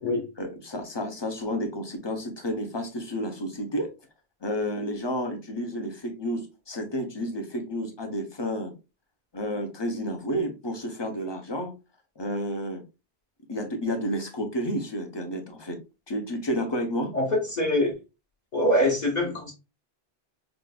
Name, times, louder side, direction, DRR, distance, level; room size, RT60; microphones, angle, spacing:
voice 1, 0.4-3.9 4.4-8.7 9.3-11.7 12.2-12.8 13.5-15.8 16.1-17.1, equal, 30° left, 0.7 m, -31 dB
voice 2, 17.1-17.9 18.5-19.5, left 1 dB, 45° left, 1.1 m, -24 dB
4.9 x 2.5 x 2.3 m
omnidirectional pair, 1.1 m